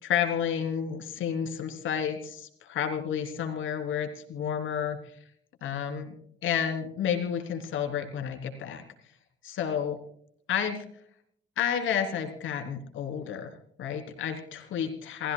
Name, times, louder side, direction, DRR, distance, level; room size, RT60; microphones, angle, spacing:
voice 1, 0.0-5.2 5.6-6.1 6.4-8.8 9.4-10.0 10.5-10.8 11.6-13.5 13.8-15.3, left 8 dB, 80° left, 5 dB, 3.5 m, -31 dB
28.5 x 16.0 x 2.3 m, 0.63 s
cardioid pair, 90°, 20 cm